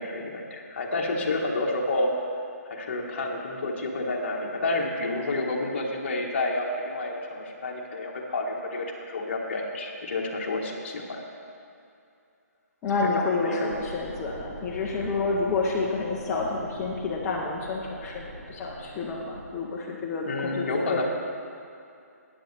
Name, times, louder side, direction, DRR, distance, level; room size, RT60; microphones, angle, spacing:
voice 1, 0.0-2.1 2.7-11.2 13.4-13.7 20.3-21.0, left 2 dB, 40° left, -1 dB, 1.4 m, -29 dB
voice 2, 12.8-21.0, left 3 dB, 10° left, -5 dB, 0.5 m, -29 dB
sound 1, 13.7-19.5, right 1 dB, 75° right, 1.8 m, -43 dB
14.0 x 9.4 x 3.3 m, 2.6 s
hypercardioid pair, 170°, 9 cm